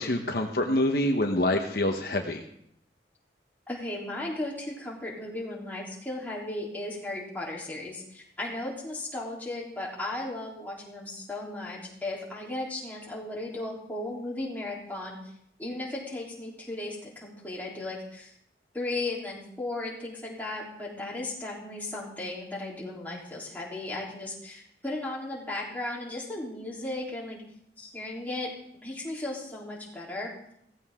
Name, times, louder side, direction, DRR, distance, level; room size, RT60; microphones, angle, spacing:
voice 1, 0.0-2.4, left 1 dB, 55° left, 3 dB, 1.1 m, -26 dB
voice 2, 3.7-15.2 15.6-18.3 18.7-27.4 27.8-30.3, left 2 dB, 10° left, -4 dB, 3.6 m, -36 dB
16.5 x 15.0 x 3.8 m, 0.72 s
head